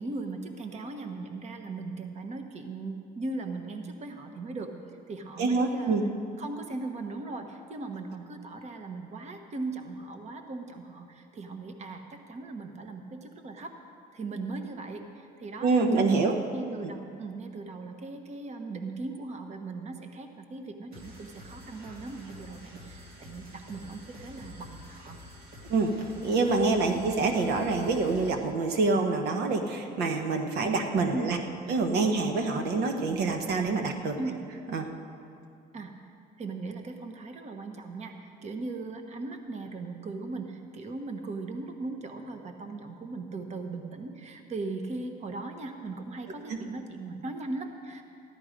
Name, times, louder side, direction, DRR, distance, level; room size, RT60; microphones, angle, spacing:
voice 1, 0.0-4.7 5.1-6.0 6.4-13.7 14.1-16.2 16.5-25.2 26.9-27.2 31.1-31.4 34.2-34.4 35.7-36.1 36.4-48.0, right 3 dB, 40° right, 5 dB, 1.1 m, -38 dB
voice 2, 5.4-6.0 15.6-16.4 16.8-16.9 25.7-25.9 26.2-31.4 31.7-34.2 34.7-34.9 46.5-46.6, right 3 dB, 80° right, 5 dB, 1.2 m, -26 dB
sound 1, 20.9-28.5, left 1 dB, 60° right, 2.3 m, -48 dB
14.5 x 11.5 x 5.1 m, 2.5 s
cardioid pair, 110°, 17 cm